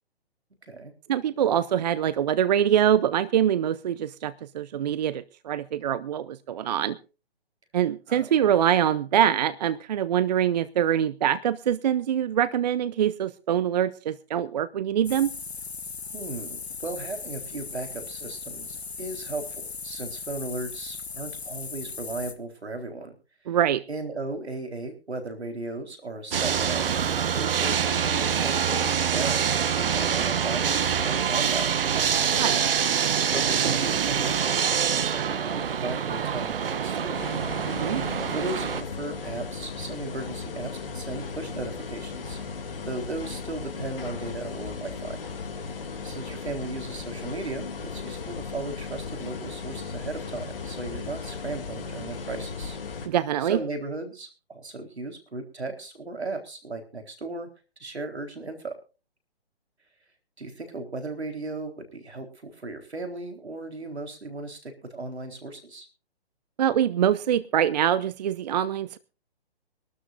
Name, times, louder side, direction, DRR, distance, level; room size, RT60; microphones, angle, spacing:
voice 1, 1.1-7.0 7.7-15.3 23.5-23.8 32.3-32.6 37.7-38.0 53.1-53.6 66.6-69.0, right 10 dB, 40° right, 16 dB, 0.6 m, -24 dB
voice 2, 8.1-8.5 16.1-23.1 23.5-23.6 23.9-32.1 33.3-37.2 38.3-45.2 46.0-52.8 53.4-57.5 57.8-58.8 60.4-65.9, right 2 dB, 85° right, 6 dB, 4.1 m, -36 dB
sound 1, 15.0-22.3, left 5 dB, 75° left, 1.9 m, -38 dB
sound 2, 26.3-38.8, right 7 dB, 60° right, 1.3 m, -25 dB
sound 3, 37.1-53.1, left 5 dB, 60° left, 2.8 m, -36 dB
24.0 x 12.5 x 2.6 m, 0.32 s
hypercardioid pair, 140°, 32 cm